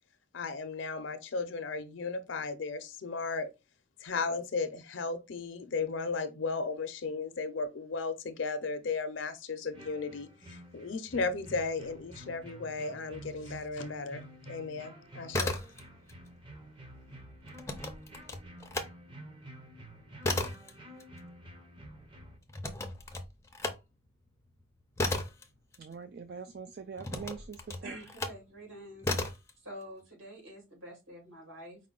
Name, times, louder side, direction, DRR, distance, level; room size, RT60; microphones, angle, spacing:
voice 1, 0.3-3.5 4.0-15.6, left 4 dB, 65° left, 0.5 m, -35 dB
sound 1, 9.7-22.4, right 1 dB, 25° right, 0.7 m, -50 dB
sound 2, 15.1-16.1 16.4-18.9 19.3-26.3 27.0-28.5 29.0-29.5, left 2 dB, 15° left, 0.5 m, -35 dB
voice 2, 25.8-28.0, right 6 dB, 50° right, 0.3 m, -43 dB
voice 3, 27.8-29.1 29.6-31.8, equal, 70° right, 2.6 m, -47 dB
4.8 x 2.2 x 3.7 m
head